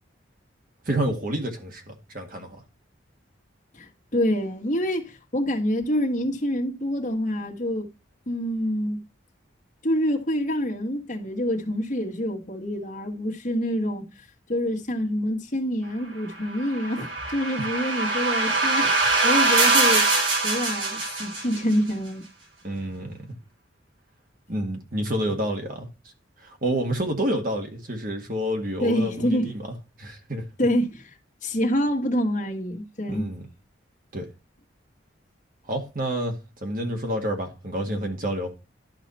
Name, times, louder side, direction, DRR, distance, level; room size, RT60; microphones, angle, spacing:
voice 1, 0.8-2.6 17.6-17.7 22.6-23.4 24.5-25.9 26.4-29.6 30.0-30.5 33.1-33.4 34.1-34.3 35.6-38.5, right 1 dB, 45° right, 1.8 m, -29 dB
voice 2, 3.7-7.9 8.3-9.0 9.8-14.1 14.5-18.9 19.2-20.1 20.4-22.2 28.8-29.5 30.6-31.1 31.4-33.3, equal, 40° left, 1.6 m, -26 dB
sound 1, 16.5-21.7, right 3 dB, 75° right, 3.9 m, -23 dB
12.0 x 4.9 x 4.2 m
head